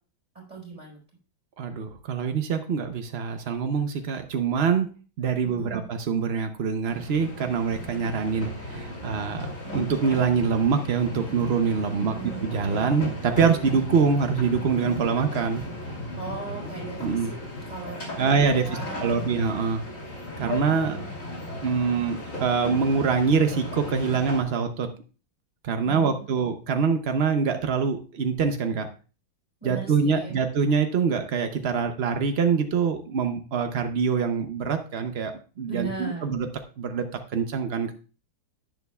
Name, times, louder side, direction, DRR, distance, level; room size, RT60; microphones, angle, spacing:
voice 1, 0.4-1.0 5.4-5.9 12.0-12.4 16.2-17.4 17.7-19.2 25.8-26.3 29.6-30.4 35.7-36.3, right 5 dB, 20° right, -2 dB, 5.3 m, -38 dB
voice 2, 1.6-4.9 5.2-9.5 9.7-12.1 12.4-15.6 17.0-17.4 18.2-18.7 19.0-19.8 20.4-21.0 21.6-24.9 25.6-28.9 29.6-36.5 36.8-37.9, right 5 dB, 60° right, 6 dB, 0.6 m, -25 dB
sound 1, 6.9-24.4, left 1 dB, 40° left, 3.1 m, -36 dB
11.0 x 10.5 x 2.3 m, 0.35 s
omnidirectional pair, 2.1 m